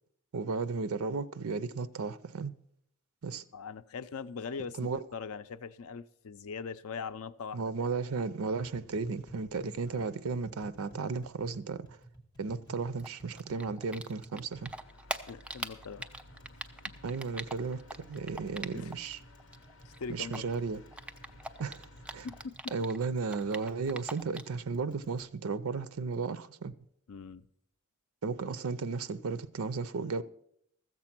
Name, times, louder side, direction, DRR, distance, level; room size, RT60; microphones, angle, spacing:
voice 1, 0.3-2.5 3.2-3.4 4.8-5.0 7.5-11.9 12.4-14.7 17.0-19.2 20.1-20.8 21.6-22.3 22.7-26.7 28.2-30.2, right 4 dB, 85° right, 0.5 m, -34 dB
voice 2, 3.5-7.7 9.9-10.1 13.6-13.7 15.3-16.1 16.9-17.0 18.7-18.9 19.8-20.5 22.2-22.7 27.1-27.5, left 5 dB, 85° left, 0.5 m, -41 dB
Tap, 8.5-25.3, right 1 dB, 20° left, 1.7 m, -55 dB
Typing, 13.0-14.4 14.7-19.1 19.4-23.0 23.3-24.6, right 1 dB, 5° right, 0.3 m, -41 dB
sound 1, 14.5-22.5, left 2 dB, 65° left, 0.9 m, -55 dB
14.0 x 7.5 x 5.9 m
head